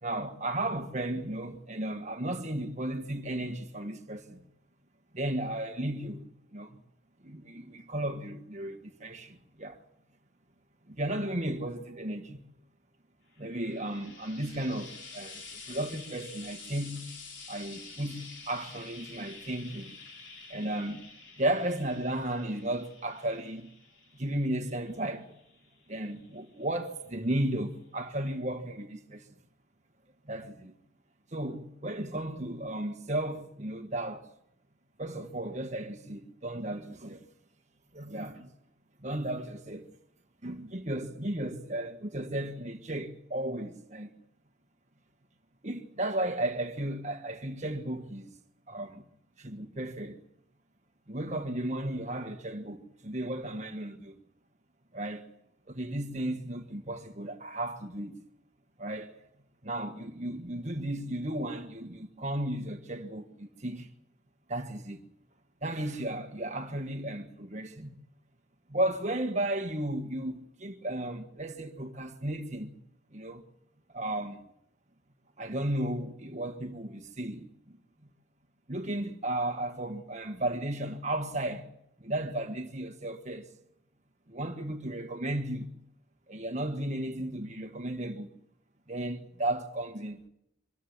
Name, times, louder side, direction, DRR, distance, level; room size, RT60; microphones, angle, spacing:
voice 1, 0.0-4.4 5.1-6.3 6.5-6.8 7.2-9.8 10.9-12.4 13.4-17.1 17.5-19.9 20.5-21.0 21.4-23.7 24.1-25.3 25.9-29.2 30.3-30.8 31.3-34.3 35.0-37.2 37.9-38.5 39.0-39.9 40.4-44.1 45.6-48.3 48.7-49.0 49.4-50.2 51.1-54.1 54.9-55.2 55.7-58.2 58.8-59.1 59.6-63.9 64.5-65.0 65.6-67.9 68.7-72.8 73.1-73.4 73.9-74.4 75.4-77.8 78.7-81.7 82.0-83.5 84.3-85.7 86.3-88.3 88.9-90.2, right 1 dB, 35° right, 1.4 m, -34 dB
Frying (food), 13.3-26.8 27.7-27.8, left 4 dB, 60° left, 3.9 m, -49 dB
25.0 x 14.0 x 9.5 m
head